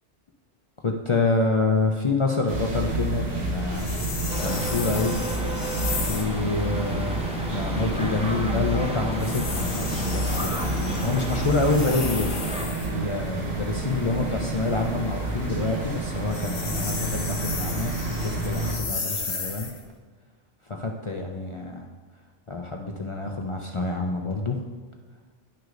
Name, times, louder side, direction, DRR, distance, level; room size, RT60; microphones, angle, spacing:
voice 1, 0.8-3.8 4.4-5.2 5.9-7.2 7.5-12.3 12.9-19.7 20.7-21.8 22.5-24.6, left 3 dB, 45° left, 1 dB, 0.4 m, -27 dB
sound 1, 2.5-18.7, right 2 dB, 80° right, 1.8 m, -29 dB
sound 2, 3.7-6.4 9.1-13.0 16.2-19.8, left 4 dB, 70° left, 1.2 m, -34 dB
sound 3, 4.3-12.7, equal, 5° right, 0.5 m, -33 dB
11.5 x 6.2 x 2.5 m, 1.4 s
omnidirectional pair, 1.2 m